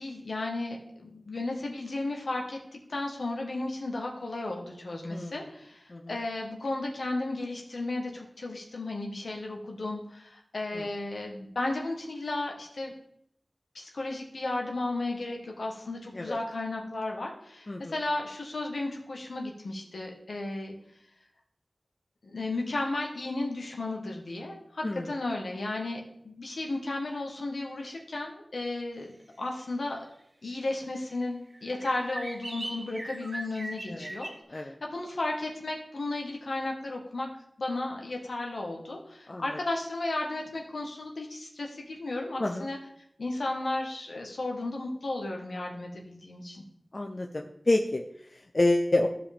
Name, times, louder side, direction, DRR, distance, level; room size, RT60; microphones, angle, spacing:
voice 1, 0.0-12.9 13.7-20.7 22.2-29.1 29.4-30.0 30.4-37.3 37.6-42.8 43.2-46.6, left 2 dB, 85° left, 1 dB, 1.5 m, -34 dB
voice 2, 5.1-5.4 5.9-6.1 10.7-10.9 16.1-16.4 17.7-18.0 24.8-25.1 33.9-34.1 34.5-34.7 39.3-39.6 42.4-42.7 46.9-49.1, left 2 dB, 45° left, 2 dB, 0.6 m, -29 dB
sound 1, 29.6-29.7 31.1-31.2 31.5-34.4, right 1 dB, 55° right, 1.5 m, -40 dB
14.0 x 5.0 x 3.5 m, 0.73 s
wide cardioid pair, 60°, 0 cm